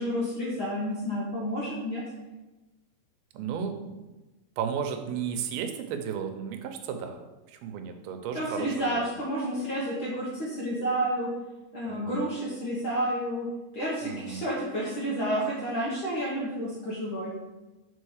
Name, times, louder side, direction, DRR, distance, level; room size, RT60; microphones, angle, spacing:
voice 1, 0.0-2.0 8.3-11.3 11.7-13.5 13.7-17.3, equal, 75° left, -7 dB, 1.1 m, -30 dB
voice 2, 3.3-4.0 4.6-7.2 7.5-9.1 11.9-12.2 14.0-14.5, right 7 dB, 80° right, 6 dB, 2.5 m, -34 dB
5.5 x 4.9 x 6.4 m, 1.1 s
omnidirectional pair, 4.6 m